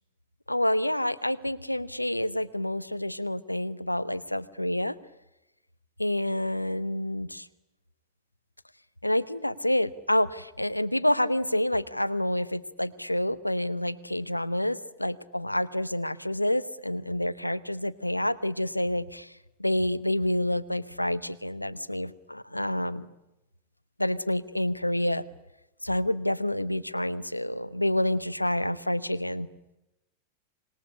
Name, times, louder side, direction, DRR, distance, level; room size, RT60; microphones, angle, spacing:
voice 1, 0.5-4.9 6.0-7.5 9.0-19.3 19.6-23.1 24.0-25.2 25.8-29.5, left 1 dB, 85° left, 18 dB, 0.9 m, -28 dB
26.5 x 21.0 x 9.9 m, 0.93 s
figure-of-eight pair, 90°, 0 cm